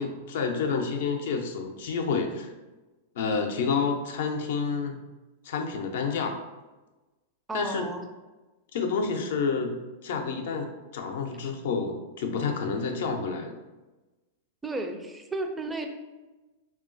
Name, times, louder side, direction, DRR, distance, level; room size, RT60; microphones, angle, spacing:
voice 1, 0.0-2.5 3.2-5.0 5.4-6.4 7.5-7.8 8.7-9.7 10.0-10.7 10.9-13.5, left 5 dB, 65° left, 4 dB, 0.5 m, -29 dB
voice 2, 7.5-8.0 14.6-15.9, right 2 dB, 10° right, 5 dB, 0.4 m, -33 dB
3.6 x 2.3 x 2.5 m, 1.1 s
hypercardioid pair, 110°, 0 cm